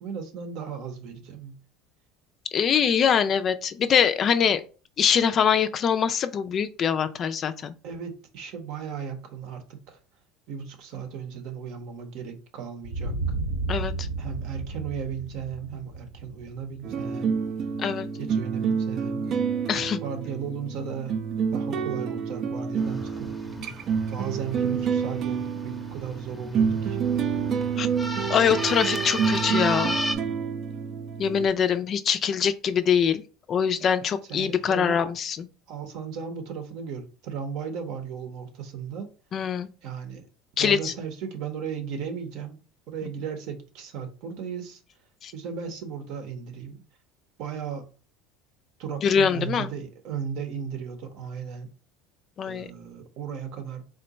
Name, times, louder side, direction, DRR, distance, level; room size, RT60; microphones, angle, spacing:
voice 1, 0.0-1.6 7.8-10.0 10.5-13.2 14.2-17.3 18.1-19.3 20.0-21.2 21.5-23.5 24.1-27.0 34.3-35.1 35.7-39.1 39.8-40.3 40.6-44.8 45.3-46.8 47.4-47.9 48.8-51.7 52.4-53.8, right 7 dB, 65° right, 0.8 m, -36 dB
voice 2, 2.5-4.6 5.0-7.7 13.7-14.1 17.8-18.1 19.7-20.0 27.8-27.9 28.3-30.1 31.2-33.2 33.5-35.5 39.3-39.7 40.6-40.9 45.2-45.3 49.0-49.7 52.4-52.7, left 7 dB, 40° left, 0.3 m, -23 dB
sound 1, 12.8-17.4, right 3 dB, 80° right, 1.1 m, -32 dB
sound 2, 16.8-31.5, right 6 dB, 45° right, 0.4 m, -28 dB
sound 3, 22.7-30.1, equal, 5° left, 0.6 m, -34 dB
3.7 x 2.2 x 4.0 m
supercardioid pair, 110°, 0 cm